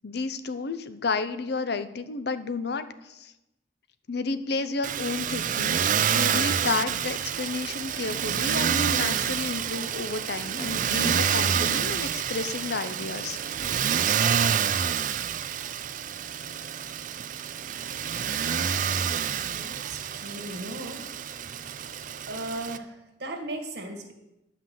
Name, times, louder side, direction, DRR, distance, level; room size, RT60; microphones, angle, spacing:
voice 1, 0.0-3.3 4.1-13.4, left 3 dB, 60° left, 11 dB, 0.7 m, -31 dB
Motor vehicle (road), 4.8-22.8, right 8 dB, 45° right, 0.4 m, -28 dB
voice 2, 19.4-21.0 22.3-24.1, right 1 dB, 65° right, 4 dB, 1.6 m, -37 dB
10.0 x 5.9 x 7.5 m, 0.92 s
head